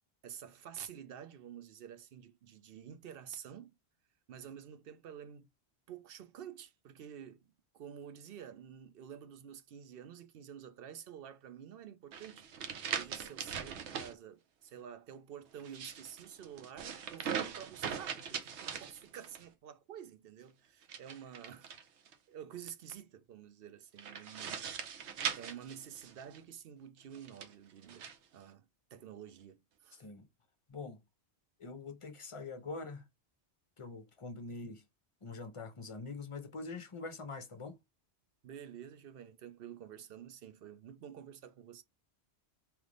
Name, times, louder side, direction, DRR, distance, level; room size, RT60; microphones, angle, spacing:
voice 1, 0.2-3.7 4.3-5.5 5.9-12.6 12.9-21.7 22.3-24.7 25.4-28.0 28.3-30.0 38.4-41.8, right 9 dB, 65° right, 0.8 m, -50 dB
sound 1, 12.1-14.1 15.6-19.5 20.8-22.1 24.0-26.4 27.1-28.2, right 7 dB, 85° right, 1.0 m, -41 dB
voice 2, 30.7-31.0 31.6-33.0 33.8-34.8 35.2-37.8, left 3 dB, 35° left, 0.6 m, -44 dB
3.3 x 3.2 x 3.8 m
omnidirectional pair, 1.1 m